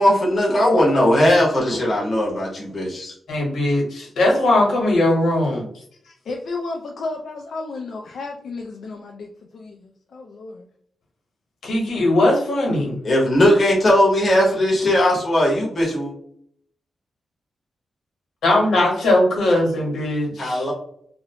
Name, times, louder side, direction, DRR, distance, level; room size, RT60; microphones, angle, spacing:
voice 1, 0.0-3.1 13.0-16.1 20.4-20.7, left 1 dB, 30° left, -4 dB, 0.9 m, -18 dB
voice 2, 3.3-5.6 11.6-13.0 18.4-20.7, left 1 dB, 85° left, -1 dB, 1.0 m, -19 dB
voice 3, 6.3-10.5, left 3 dB, 60° left, 2 dB, 0.3 m, -32 dB
2.5 x 2.0 x 2.8 m, 0.67 s
wide cardioid pair, 180°, 0 cm